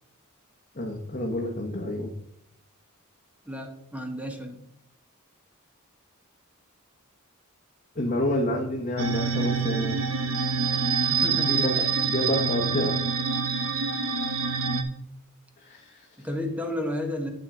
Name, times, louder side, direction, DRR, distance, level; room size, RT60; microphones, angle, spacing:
voice 1, 0.8-2.1 7.9-10.0 10.9-11.2 11.5-13.0 15.6-16.3, left 1 dB, 40° left, -1 dB, 1.1 m, -29 dB
voice 2, 3.5-4.7 11.1-11.8 16.2-17.3, left 1 dB, 5° right, 4 dB, 1.1 m, -32 dB
sound 1, 9.0-14.8, right 5 dB, 80° right, 1.0 m, -26 dB
9.0 x 5.8 x 5.0 m, 0.78 s
head